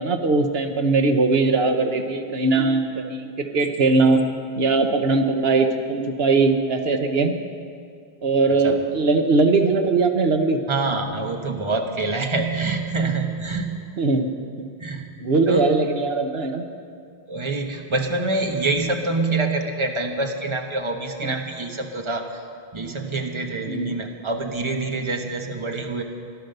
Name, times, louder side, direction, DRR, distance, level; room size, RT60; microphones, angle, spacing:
voice 1, 0.0-4.2 4.6-7.4 8.2-10.6 14.0-14.3 15.2-16.6 21.2-21.3 23.7-24.0, right 3 dB, 75° right, 6 dB, 1.2 m, -20 dB
voice 2, 10.7-13.8 14.8-15.1 15.5-15.7 17.3-22.4 22.7-26.0, right 3 dB, 30° right, 3 dB, 1.2 m, -26 dB
16.0 x 12.0 x 6.6 m, 2.4 s
omnidirectional pair, 1.0 m